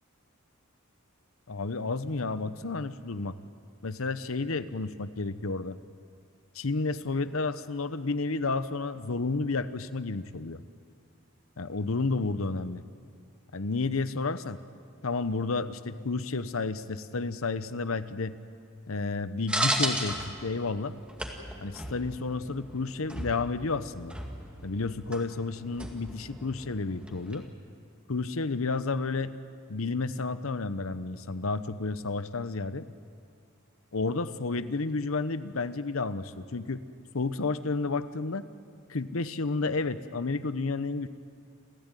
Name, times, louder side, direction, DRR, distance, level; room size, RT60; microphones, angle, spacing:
voice 1, 1.5-3.3 3.8-5.8 6.5-10.6 11.6-12.8 13.5-14.6 15.0-18.4 18.9-21.0 21.6-24.1 24.6-27.5 28.1-29.3 29.7-32.9 33.9-36.8 37.1-38.5 38.9-41.1, left 3 dB, 75° left, 13 dB, 0.9 m, -31 dB
sound 1, 19.5-27.5, right 1 dB, 5° right, 2.0 m, -36 dB
29.0 x 14.5 x 9.1 m, 2.2 s
head